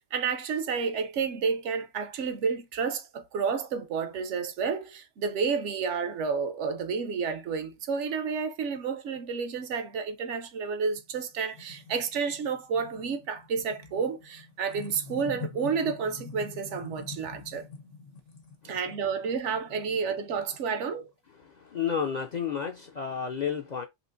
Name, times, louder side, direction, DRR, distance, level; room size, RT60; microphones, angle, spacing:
voice 1, 0.1-17.7 18.6-21.1, right 5 dB, 80° right, 1.0 m, -30 dB
sound 1, 11.0-21.0, left 4 dB, 90° left, 1.5 m, -46 dB
voice 2, 21.6-23.9, left 7 dB, 55° left, 0.5 m, -31 dB
4.3 x 2.9 x 2.5 m
omnidirectional pair, 1.2 m